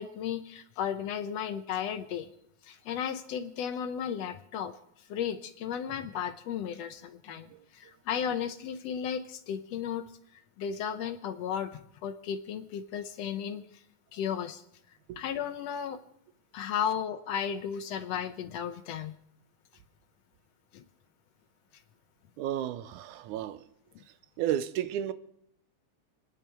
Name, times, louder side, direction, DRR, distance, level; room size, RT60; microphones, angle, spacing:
voice 1, 0.0-2.3 2.6-4.7 5.1-10.1 10.6-13.6 14.1-14.6 15.2-16.0 16.5-19.1 20.7-20.8, left 8 dB, 75° left, 1.6 m, -34 dB
voice 2, 22.4-23.6 24.4-25.1, right 11 dB, 90° right, 2.2 m, -32 dB
28.5 x 10.5 x 4.5 m
omnidirectional pair, 3.4 m